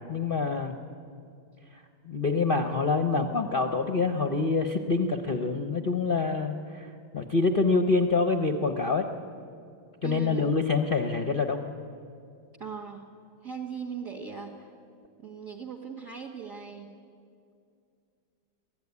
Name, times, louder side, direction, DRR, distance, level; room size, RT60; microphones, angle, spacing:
voice 1, 0.1-0.7 2.0-9.0 10.0-11.6, left 4 dB, 45° left, 6 dB, 0.7 m, -26 dB
voice 2, 10.0-10.6 12.6-13.1 13.4-14.7 15.2-17.0, right 6 dB, 45° right, 2 dB, 1.6 m, -39 dB
22.5 x 14.5 x 9.7 m, 2.4 s
omnidirectional pair, 2.2 m